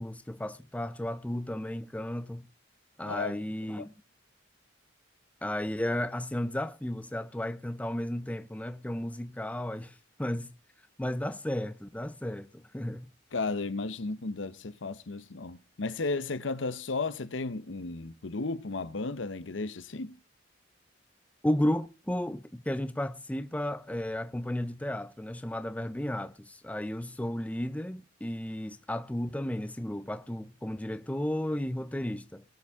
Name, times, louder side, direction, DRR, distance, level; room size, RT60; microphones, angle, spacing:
voice 1, 0.0-2.5 3.0-3.9 5.4-10.5 11.0-12.5 12.7-13.1 21.4-32.4, left 1 dB, 10° left, 0.5 m, -33 dB
voice 2, 3.0-3.4 3.8-3.9 13.3-20.2, left 3 dB, 80° left, 0.8 m, -34 dB
21.0 x 7.3 x 3.6 m
head